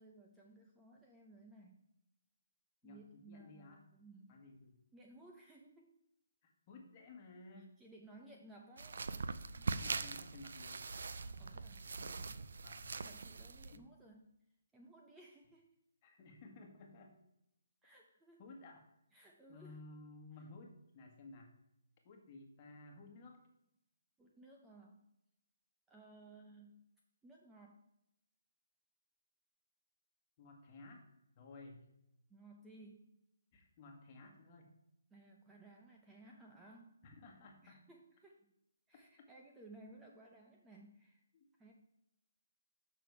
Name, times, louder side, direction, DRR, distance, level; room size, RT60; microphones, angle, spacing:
voice 1, 0.0-1.8 2.8-4.4 4.9-5.9 7.6-9.1 9.6-9.8 11.4-12.5 13.0-14.3 14.7-15.7 17.8-18.4 19.1-19.8 24.2-25.0 25.9-26.8 27.2-27.8 32.3-33.1 35.1-37.0 37.6-38.5 38.9-41.2 41.6-41.7, right 2 dB, 5° right, 0 dB, 0.6 m, -59 dB
voice 2, 2.8-3.8 4.3-4.8 6.4-7.7 9.8-10.9 12.6-13.0 13.7-13.8 16.0-17.2 18.4-18.8 19.5-21.5 22.0-23.4 30.4-31.0 31.4-31.8 33.5-34.7 37.0-37.8 39.2-39.3 41.3-41.5, left 2 dB, 30° left, 1 dB, 1.5 m, -55 dB
sound 1, 8.8-13.8, right 4 dB, 70° right, 0.5 m, -42 dB
7.4 x 6.1 x 4.7 m, 0.80 s
hypercardioid pair, 165°, 0 cm